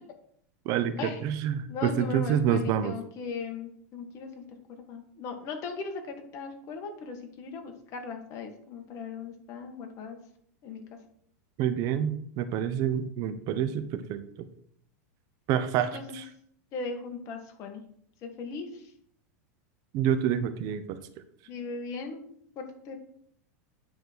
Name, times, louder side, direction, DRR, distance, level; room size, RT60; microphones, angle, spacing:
voice 1, 0.6-2.9 11.6-14.5 15.5-16.2 19.9-21.0, right 9 dB, 45° right, 10 dB, 0.8 m, -28 dB
voice 2, 1.7-4.4 4.9-10.2 10.6-10.8 15.8-16.2 16.7-17.8 18.2-18.8 21.5-22.2 22.6-23.0, left 4 dB, 40° left, 4 dB, 1.9 m, -38 dB
9.6 x 4.1 x 6.2 m, 0.64 s
supercardioid pair, 135°, 8 cm